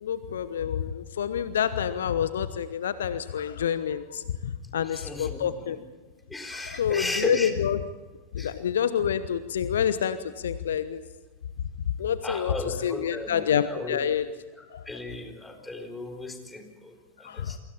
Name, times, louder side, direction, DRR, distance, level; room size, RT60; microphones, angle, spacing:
voice 1, 0.0-5.8 6.5-7.8 8.3-11.0 12.0-14.3 17.2-17.6, left 8 dB, 65° left, 13 dB, 1.0 m, -28 dB
voice 2, 4.8-5.8 6.3-7.5 8.4-8.5 12.2-14.0 14.5-17.6, left 2 dB, 10° left, 4 dB, 4.1 m, -36 dB
28.5 x 24.0 x 4.4 m, 1.3 s
figure-of-eight pair, 90°, 0 cm